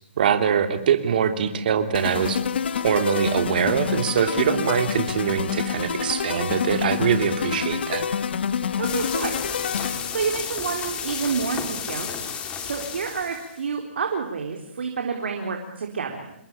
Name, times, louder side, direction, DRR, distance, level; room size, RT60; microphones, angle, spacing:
voice 1, 0.2-2.4 2.8-8.0, right 8 dB, 50° right, 7 dB, 3.3 m, -23 dB
sound 1, 1.9-10.3, left 7 dB, 60° left, 1.4 m, -27 dB
sound 2, 8.8-13.6, left 7 dB, 15° left, 3.2 m, -32 dB
voice 2, 8.8-9.3 10.1-12.1 12.6-16.3, right 5 dB, 70° right, 3 dB, 4.2 m, -29 dB
28.0 x 22.0 x 8.9 m, 0.77 s
hypercardioid pair, 155°, 6 cm